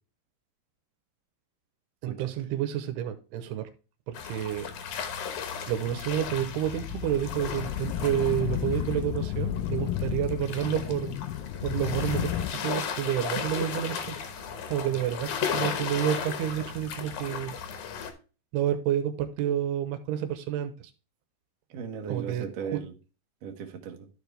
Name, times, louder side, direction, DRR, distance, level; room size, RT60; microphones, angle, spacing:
voice 1, 2.0-3.7 4.1-4.7 5.7-11.2 11.6-14.2 14.6-17.5 18.5-20.9 22.1-22.8, right 11 dB, 80° right, 2.8 m, -29 dB
sound 1, 4.1-18.1, left 7 dB, 65° left, 2.2 m, -36 dB
sound 2, 5.7-12.5, left 13 dB, 80° left, 2.1 m, -33 dB
voice 2, 21.7-22.9 23.4-24.1, right 7 dB, 65° right, 1.7 m, -37 dB
12.5 x 4.8 x 3.3 m
omnidirectional pair, 4.8 m